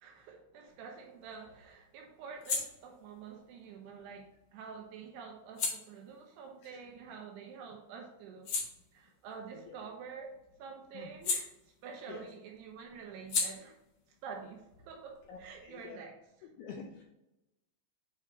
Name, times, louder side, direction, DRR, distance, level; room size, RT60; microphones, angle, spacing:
voice 1, 0.0-8.5 8.9-10.3 10.6-13.8 14.2-16.1, right 6 dB, 80° right, 1 dB, 2.5 m, -48 dB
sound 1, 0.7-7.6 8.0-12.2 12.4-15.9, left 4 dB, 55° left, 2.0 m, -41 dB
voice 2, 15.3-16.0 16.6-17.0, left 6 dB, 85° left, 0 dB, 2.3 m, -47 dB
8.3 x 4.7 x 3.0 m, 0.92 s
omnidirectional pair, 5.4 m